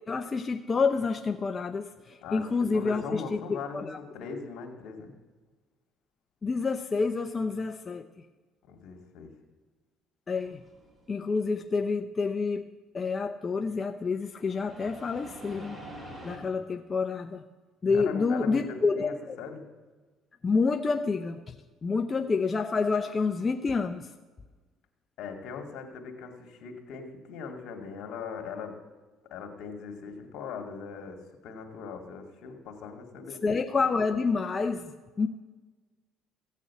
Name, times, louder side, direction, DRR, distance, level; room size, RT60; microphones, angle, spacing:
voice 1, 0.1-4.0 6.4-8.0 10.3-10.6 11.1-12.7 12.9-15.8 16.2-17.4 17.8-19.4 20.4-21.5 21.8-24.1 33.4-34.9 35.2-35.3, left 4 dB, 30° left, 6 dB, 0.6 m, -28 dB
voice 2, 2.7-5.1 8.7-9.3 17.9-19.6 25.2-28.8 29.3-33.6, left 5 dB, 70° left, 3 dB, 2.1 m, -40 dB
sound 1, 10.4-11.5 14.3-16.4, right 1 dB, 15° right, 4.4 m, -46 dB
15.0 x 6.6 x 8.2 m, 1.3 s
cardioid pair, 100°, 0 cm